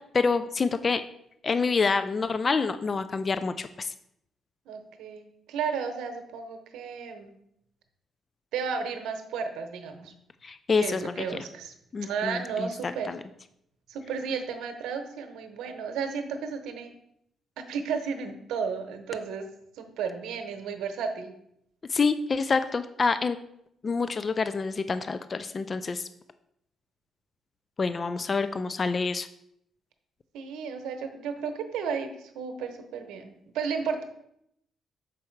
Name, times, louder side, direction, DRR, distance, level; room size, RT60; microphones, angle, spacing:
voice 1, 0.1-1.0 1.4-3.9 10.4-11.3 11.9-13.2 21.9-23.4 23.8-26.0 27.8-29.3, left 4 dB, 35° left, 12 dB, 0.4 m, -27 dB
voice 2, 4.7-7.3 8.5-10.1 10.8-11.7 12.0-13.1 13.9-16.9 17.6-19.5 19.8-21.3 30.3-34.0, right 6 dB, 85° right, 6 dB, 0.9 m, -33 dB
6.4 x 4.7 x 4.5 m, 0.76 s
cardioid pair, 90°, 0 cm